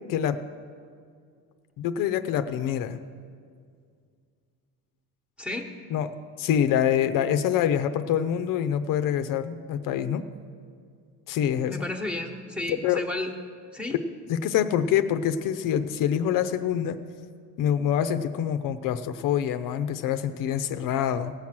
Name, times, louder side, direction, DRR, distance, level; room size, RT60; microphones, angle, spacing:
voice 1, 1.8-3.0 5.9-10.3 11.3-11.8 12.7-13.0 13.9-14.0 14.3-17.0 17.6-21.3, left 9 dB, 65° left, 10 dB, 0.6 m, -26 dB
voice 2, 5.4-5.7 11.6-13.3 13.7-14.0, left 2 dB, 5° right, 4 dB, 1.1 m, -32 dB
17.5 x 7.4 x 6.0 m, 2.2 s
cardioid pair, 130°, 35 cm